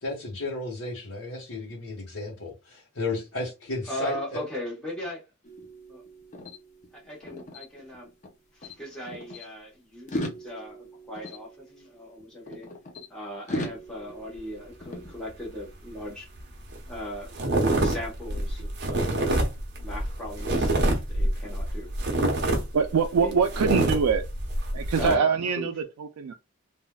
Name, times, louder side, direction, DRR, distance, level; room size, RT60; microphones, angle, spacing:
voice 1, 0.0-4.4, left 2 dB, 65° left, 1.2 m, -33 dB
voice 2, 3.9-5.2 5.9-6.0 6.9-8.1 8.5-12.7 13.1-16.3 16.8-17.3 17.8-19.2 19.8-21.9 22.3-22.6 23.1-23.3 24.9-25.7, equal, 5° left, 1.0 m, -38 dB
sound 1, 5.4-8.3 8.6-9.4 10.0-13.1 13.5-15.7, left 1 dB, 35° left, 0.6 m, -39 dB
sound 2, 16.4-16.5 16.7-17.0 17.3-25.1, right 1 dB, 50° right, 0.9 m, -26 dB
voice 3, 22.7-24.2 24.7-26.3, right 6 dB, 90° right, 0.4 m, -24 dB
3.4 x 2.5 x 2.2 m
head